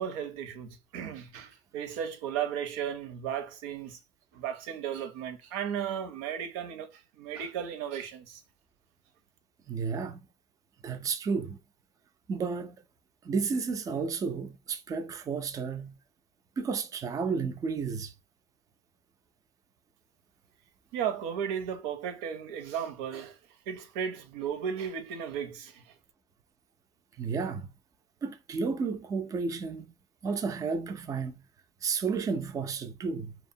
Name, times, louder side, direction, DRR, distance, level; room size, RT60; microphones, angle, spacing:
voice 1, 0.0-4.0 4.3-8.4 20.9-23.4 23.7-25.8, right 8 dB, 75° right, 0.6 m, -35 dB
voice 2, 9.7-10.2 10.8-11.6 12.3-12.8 13.2-15.9 16.6-18.1 27.2-27.7 28.2-29.9 30.2-31.3 31.8-33.3, right 5 dB, 20° right, 0.3 m, -32 dB
2.8 x 2.0 x 2.6 m
cardioid pair, 145°, 18 cm